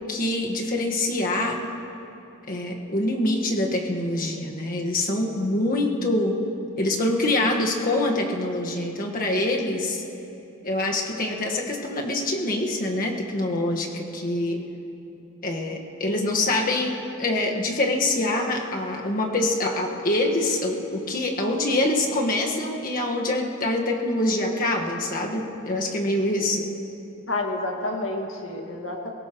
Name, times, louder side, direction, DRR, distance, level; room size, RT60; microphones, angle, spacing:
voice 1, 0.0-1.6 2.5-6.4 6.8-10.0 10.6-14.6 15.4-26.7, left 1 dB, 45° left, 0 dB, 1.6 m, -25 dB
voice 2, 27.3-29.1, left 2 dB, 75° left, 1 dB, 2.0 m, -29 dB
22.5 x 17.5 x 3.1 m, 2.8 s
head